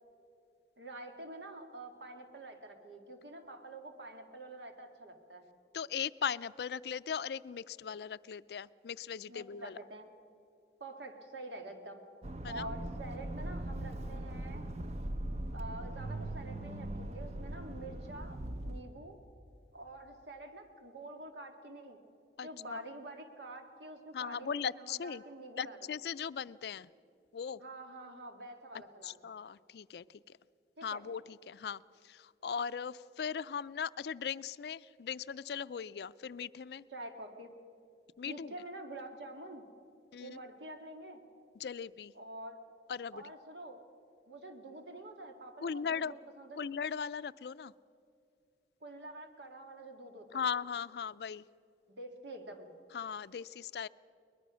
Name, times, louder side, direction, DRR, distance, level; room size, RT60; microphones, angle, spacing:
voice 1, 0.8-5.4 9.3-10.1 10.8-12.0 12.5-14.7 15.5-19.2 19.7-22.0 22.4-25.8 27.6-29.2 30.8-31.0 36.9-37.6 38.2-39.6 40.2-41.2 42.2-42.6 43.1-43.8 44.3-46.7 48.8-50.5 51.9-52.7, right 2 dB, 80° right, 5 dB, 2.1 m, -47 dB
voice 2, 5.7-9.8 12.4-12.7 22.4-22.8 24.1-25.2 25.6-26.9 27.3-27.6 29.0-30.2 30.8-36.9 38.2-38.5 40.1-40.4 41.6-42.1 42.9-43.2 45.6-46.1 46.6-47.7 50.3-51.4 52.9-53.9, left 7 dB, 65° left, 17 dB, 0.4 m, -38 dB
Accelerating revving vroom, 12.2-18.8, right 1 dB, 40° right, 0.6 m, -40 dB
22.0 x 20.5 x 6.2 m, 2.5 s
head